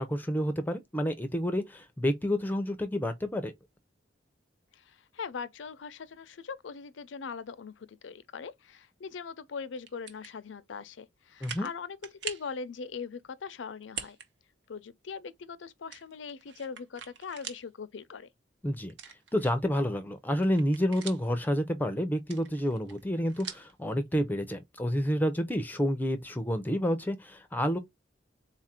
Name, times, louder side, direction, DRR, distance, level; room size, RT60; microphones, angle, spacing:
voice 1, 0.0-3.5 11.4-11.7 18.6-18.9 19.3-27.8, equal, 10° left, 0.4 m, -29 dB
voice 2, 4.7-12.0 12.2-14.2 14.7-18.3, left 5 dB, 85° left, 0.5 m, -41 dB
sound 1, 9.8-10.3 10.9-11.0 11.4-11.7 12.0-12.5 13.8-14.3 14.6-14.7 15.9-17.6 18.0-18.1 18.9-19.8 20.2-21.4 22.2-23.7, right 7 dB, 65° right, 0.8 m, -43 dB
3.9 x 2.5 x 4.2 m
head